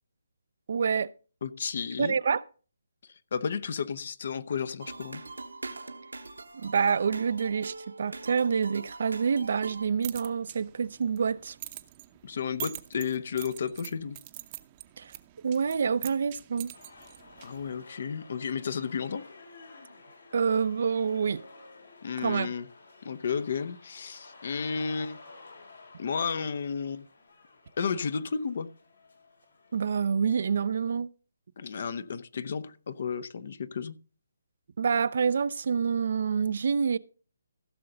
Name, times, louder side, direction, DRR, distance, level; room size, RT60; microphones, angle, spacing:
voice 1, 0.7-1.1 2.0-2.4 6.5-11.6 15.0-15.1 15.4-16.7 20.3-21.4 22.2-22.5 29.7-31.1 34.8-37.0, right 6 dB, 55° right, 0.5 m, -27 dB
voice 2, 1.4-2.1 3.3-5.2 12.2-14.2 17.4-19.2 22.0-22.7 23.0-25.2 26.0-27.1 27.8-28.7 31.6-34.0, left 6 dB, 55° left, 0.8 m, -32 dB
sound 1, 4.8-9.9, right 3 dB, 80° right, 1.2 m, -43 dB
sound 2, 9.7-17.8, right 15 dB, 30° right, 0.8 m, -45 dB
sound 3, 16.7-30.0, left 3 dB, 75° left, 3.4 m, -52 dB
15.5 x 6.7 x 3.9 m
figure-of-eight pair, 145°, 0 cm